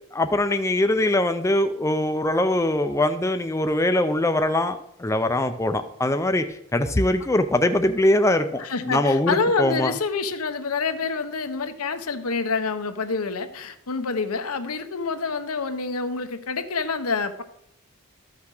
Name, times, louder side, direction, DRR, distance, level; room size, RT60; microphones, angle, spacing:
voice 1, 0.1-9.9, left 1 dB, 15° left, 7 dB, 0.5 m, -22 dB
voice 2, 8.6-17.4, left 4 dB, 80° left, 9 dB, 0.9 m, -27 dB
13.0 x 5.9 x 6.5 m, 0.76 s
head